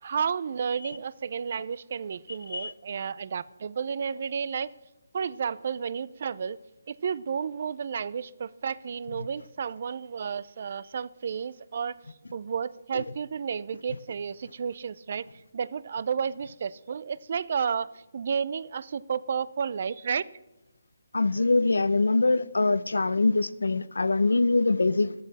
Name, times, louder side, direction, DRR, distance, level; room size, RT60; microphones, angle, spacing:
voice 1, 0.0-4.7 5.1-6.6 6.9-12.0 12.3-20.3, right 6 dB, 50° right, 0.5 m, -32 dB
voice 2, 21.1-25.1, left 3 dB, 90° left, 0.6 m, -23 dB
14.0 x 11.5 x 4.1 m
hypercardioid pair, 160°, 0 cm